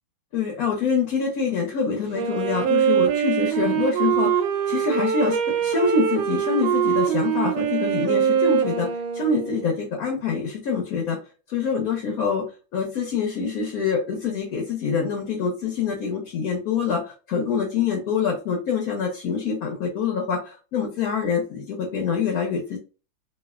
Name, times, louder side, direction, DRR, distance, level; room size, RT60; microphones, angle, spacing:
voice 1, 0.3-8.9 9.1-11.2 11.5-12.5 12.7-22.8, left 5 dB, 65° left, 1 dB, 1.0 m, -25 dB
Wind instrument woodwind instrument, 2.1-9.9, right 8 dB, 85° right, 1.3 m, -23 dB
3.3 x 2.5 x 2.3 m, 0.33 s
omnidirectional pair, 2.1 m